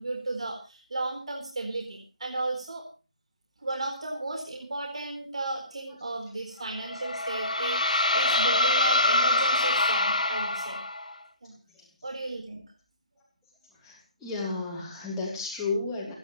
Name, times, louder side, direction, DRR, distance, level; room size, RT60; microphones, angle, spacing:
voice 1, 0.0-2.9 3.6-10.8 11.4-11.5 12.0-12.6, right 2 dB, 50° right, 2 dB, 4.2 m, -34 dB
sound 1, 6.8-11.1, left 2 dB, 85° left, 2.0 m, -25 dB
voice 2, 13.8-16.1, left 3 dB, 5° left, -6 dB, 3.3 m, -33 dB
28.5 x 10.5 x 3.2 m, 0.34 s
figure-of-eight pair, 175°, 4 cm